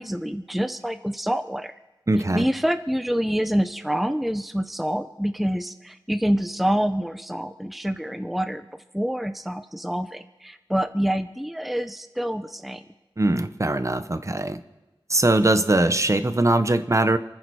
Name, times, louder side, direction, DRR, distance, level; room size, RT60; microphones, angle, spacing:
voice 1, 0.0-1.7 2.3-8.7 8.9-12.8, equal, ahead, 10 dB, 0.7 m, -26 dB
voice 2, 2.1-2.4 13.2-14.6 15.1-17.2, right 2 dB, 35° right, 11 dB, 0.9 m, -21 dB
28.5 x 9.8 x 4.8 m, 1.1 s
wide cardioid pair, 65°, 9 cm